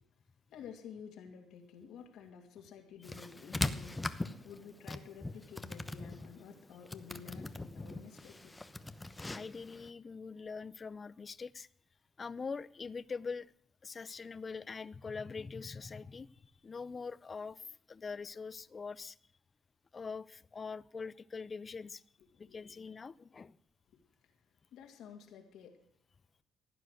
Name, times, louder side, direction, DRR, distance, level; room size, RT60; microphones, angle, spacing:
voice 1, 0.5-8.5 22.4-22.8 24.7-25.8, left 7 dB, 85° left, 3 dB, 2.5 m, -52 dB
sound 1, 3.0-9.9, left 2 dB, 15° left, 1.0 m, -41 dB
voice 2, 9.3-11.7 12.2-13.5 13.8-19.2 19.9-22.0 22.3-23.5, left 5 dB, 35° left, 20 dB, 0.5 m, -43 dB
16.0 x 9.4 x 6.5 m, 0.68 s
cardioid pair, 90°, 0 cm